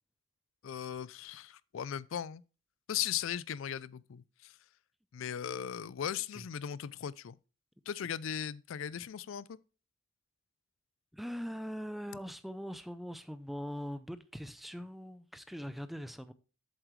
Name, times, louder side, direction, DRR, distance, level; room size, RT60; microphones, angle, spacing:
voice 1, 0.6-2.4 2.9-4.6 5.1-7.4 7.9-9.6, left 9 dB, 70° left, 0.4 m, -38 dB
voice 2, 11.1-16.3, equal, ahead, 0.4 m, -41 dB
8.0 x 7.5 x 3.1 m
head